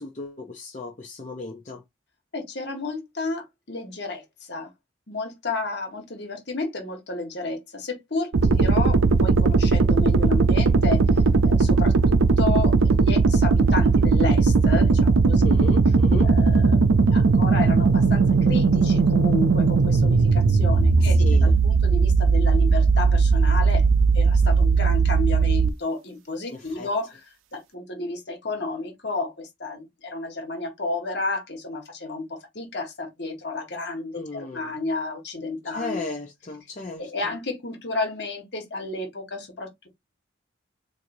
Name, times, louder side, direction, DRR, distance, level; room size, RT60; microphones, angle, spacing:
voice 1, 0.0-1.8 8.5-8.7 15.4-16.3 21.0-21.5 26.5-26.9 34.1-34.7 35.6-37.1, left 3 dB, 35° left, 0.6 m, -35 dB
voice 2, 2.3-4.7 5.1-15.4 16.2-23.9 24.1-27.2 27.5-36.0 37.0-39.9, left 3 dB, 55° left, 1.4 m, -32 dB
sound 1, 8.3-25.7, right 4 dB, 85° right, 0.5 m, -18 dB
4.4 x 2.6 x 2.6 m
head